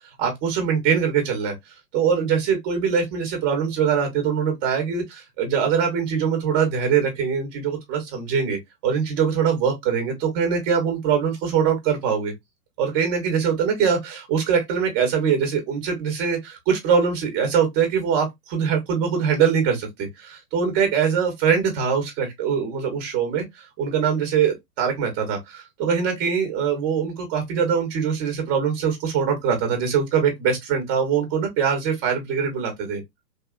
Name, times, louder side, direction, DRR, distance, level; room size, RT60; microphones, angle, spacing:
voice 1, 0.2-1.5 1.9-12.3 12.8-23.4 23.8-33.0, right 7 dB, 20° right, 0.6 m, -23 dB
2.8 x 2.2 x 2.2 m
hypercardioid pair, 140°, 49 cm